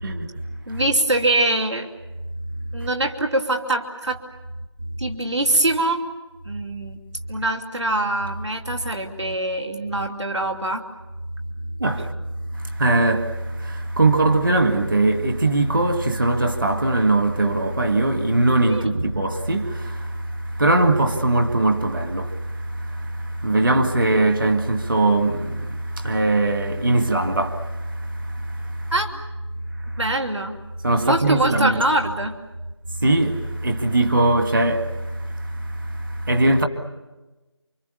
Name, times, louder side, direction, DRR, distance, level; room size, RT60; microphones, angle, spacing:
voice 1, 0.0-0.3 0.7-0.8 11.8-12.1 12.5-28.9 29.8-30.0 30.8-31.8 33.0-36.7, right 2 dB, 45° right, 2.0 m, -21 dB
voice 2, 0.7-1.9 2.7-4.2 5.0-6.1 6.4-7.0 7.3-10.8 18.7-18.9 28.9-29.2 30.0-30.6 31.0-32.3, right 2 dB, 75° right, 2.9 m, -23 dB
28.5 x 26.0 x 7.1 m
figure-of-eight pair, 170°, 15 cm